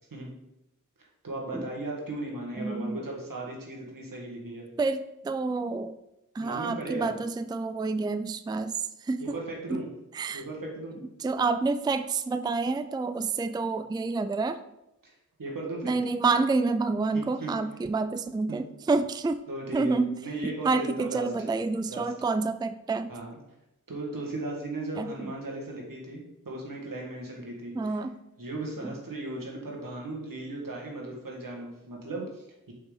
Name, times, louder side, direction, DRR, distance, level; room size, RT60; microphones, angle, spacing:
voice 1, 1.0-4.7 6.4-7.1 9.2-9.9 10.3-11.0 15.0-15.1 15.4-15.9 17.1-17.5 19.5-21.3 21.9-22.1 23.1-23.4 23.9-28.0 28.4-32.7, right 2 dB, 85° right, -2 dB, 1.8 m, -37 dB
voice 2, 2.6-3.0 4.8-6.0 6.3-9.2 9.7-9.8 10.1-10.4 11.2-14.6 15.8-19.4 19.7-20.2 20.4-23.1 25.0-25.3 27.7-28.2 28.8-28.9, right 3 dB, 15° right, 11 dB, 0.3 m, -28 dB
6.8 x 5.4 x 4.0 m, 0.87 s
wide cardioid pair, 50°, 32 cm